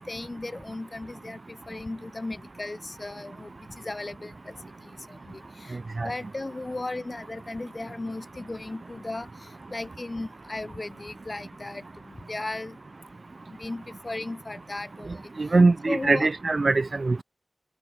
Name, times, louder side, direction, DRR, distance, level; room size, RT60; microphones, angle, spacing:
voice 1, 0.0-3.5 3.8-4.5 5.1-5.4 5.7-5.8 6.0-9.3 9.7-12.8 13.6-15.2 15.9-16.3, left 2 dB, 45° left, 3.9 m, -36 dB
voice 2, 15.4-17.2, right 3 dB, 65° right, 1.7 m, -22 dB
wide cardioid pair, 50°, 0 cm